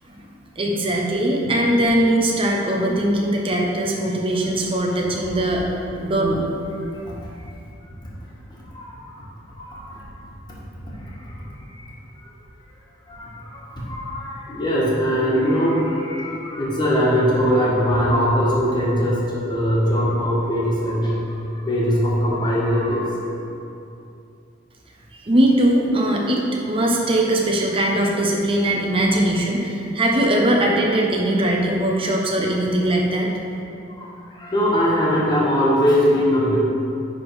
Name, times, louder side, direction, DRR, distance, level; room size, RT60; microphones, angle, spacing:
voice 1, 0.6-5.6 5.9-6.5 25.1-33.3, right 1 dB, 30° right, -1 dB, 0.9 m, -20 dB
voice 2, 7.1-7.5 8.7-9.3 9.5-10.1 11.1-11.4 11.7-11.9 12.2-12.3 13.1-21.2 21.5-23.2 34.0-34.1 34.3-36.6, equal, 25° left, -6 dB, 1.6 m, -21 dB
10.5 x 3.7 x 4.8 m, 2.7 s
head